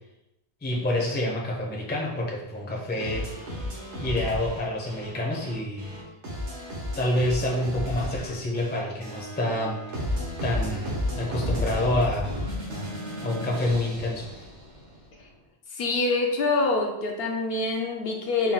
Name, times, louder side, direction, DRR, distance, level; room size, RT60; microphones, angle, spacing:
voice 1, 0.6-3.3 4.0-5.9 7.0-9.8 10.4-12.3 13.2-14.5, left 1 dB, 15° left, -2 dB, 0.4 m, -28 dB
sound 1, 3.0-14.9, left 1 dB, 80° right, 1.4 m, -33 dB
voice 2, 15.7-18.5, left 3 dB, 65° left, 2 dB, 0.7 m, -25 dB
4.3 x 2.3 x 3.7 m, 0.90 s
omnidirectional pair, 1.2 m